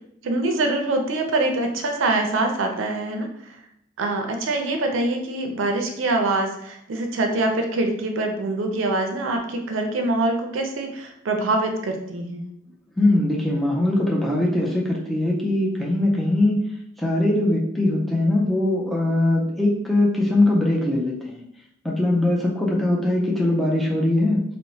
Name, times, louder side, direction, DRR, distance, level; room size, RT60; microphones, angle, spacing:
voice 1, 0.2-3.3 4.0-12.5, right 2 dB, 90° right, 3 dB, 0.4 m, -24 dB
voice 2, 13.0-16.6 17.0-21.4 21.8-24.4, left 1 dB, ahead, -4 dB, 0.3 m, -21 dB
2.9 x 2.0 x 2.6 m, 0.77 s
head